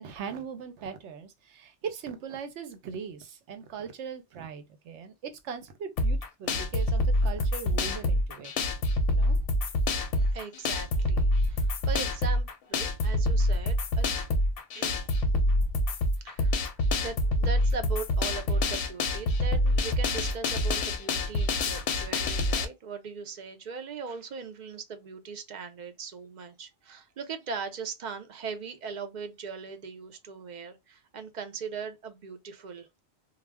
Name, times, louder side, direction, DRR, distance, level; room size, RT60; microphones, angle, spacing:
voice 1, 0.0-8.5 9.1-9.4, right 6 dB, 80° right, 0.9 m, -40 dB
sound 1, 6.0-22.6, left 1 dB, 65° left, 0.7 m, -26 dB
voice 2, 10.2-14.2 14.7-15.2 15.9-32.9, right 5 dB, 55° right, 0.5 m, -40 dB
2.3 x 2.0 x 3.3 m
omnidirectional pair, 1.2 m